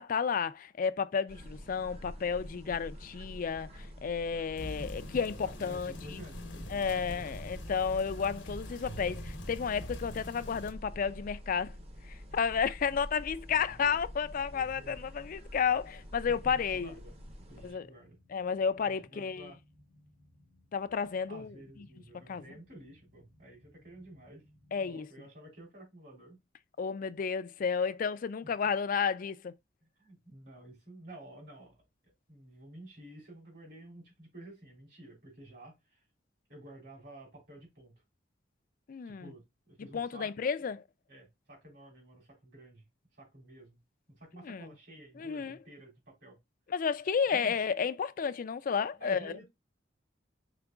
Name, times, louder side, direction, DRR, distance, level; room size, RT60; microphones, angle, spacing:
voice 1, 0.0-6.2 6.7-11.7 12.1-16.9 17.6-17.9 18.3-19.5 20.7-21.5 22.3-22.4 24.7-25.1 26.8-29.5 38.9-39.3 39.9-40.8 44.4-44.7 45.2-45.6 46.7-49.3, left 6 dB, 50° left, 0.4 m, -32 dB
sound 1, 1.3-17.7, equal, 35° right, 0.8 m, -47 dB
sound 2, 4.6-10.7, equal, 90° left, 0.9 m, -44 dB
voice 2, 5.4-7.4 13.5-14.0 14.5-15.1 16.2-17.1 17.5-18.2 18.8-19.6 21.3-24.4 24.8-26.4 30.0-31.8 32.0-36.0 36.5-37.9 39.0-40.3 41.1-42.8 43.2-43.8 44.2-46.4 47.3-47.6 49.0-49.5, right 1 dB, 65° right, 3.3 m, -52 dB
sound 3, 16.1-24.9, left 1 dB, 90° right, 3.0 m, -63 dB
4.9 x 4.4 x 2.3 m
head